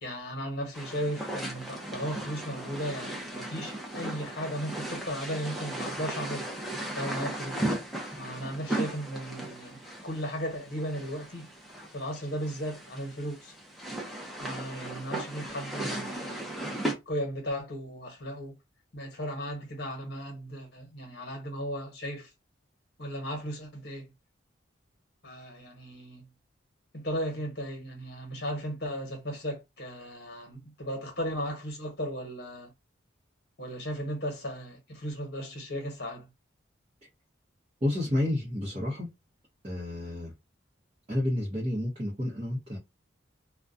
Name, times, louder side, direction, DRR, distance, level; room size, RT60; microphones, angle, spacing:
voice 1, 0.0-6.5 6.9-7.7 8.2-11.5 11.9-13.5 14.4-18.5 18.9-22.3 23.0-24.1 25.2-26.2 26.9-32.7 33.6-36.2, equal, 55° left, 1.0 m, -36 dB
sound 1, 0.7-16.9, right 1 dB, ahead, 0.5 m, -36 dB
voice 2, 37.8-39.1 39.6-40.3 41.1-42.8, left 1 dB, 30° right, 0.8 m, -30 dB
2.4 x 2.2 x 2.5 m
head